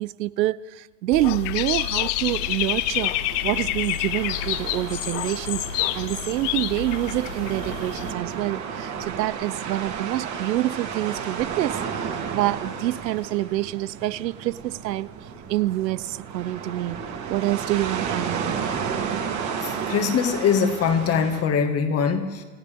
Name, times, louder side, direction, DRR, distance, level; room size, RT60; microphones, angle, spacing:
voice 1, 0.0-3.1 3.4-15.1 15.5-17.0 17.3-18.5 19.8-19.9, right 15 dB, 85° right, 0.6 m, -27 dB
Dog / Bird, 1.1-8.1, left 15 dB, 50° left, 0.8 m, -28 dB
sound 1, 2.3-21.4, right 6 dB, 35° right, 2.8 m, -33 dB
voice 2, 19.6-22.4, left 6 dB, 30° left, 1.8 m, -22 dB
28.0 x 14.5 x 3.6 m
hypercardioid pair, 115°, 49 cm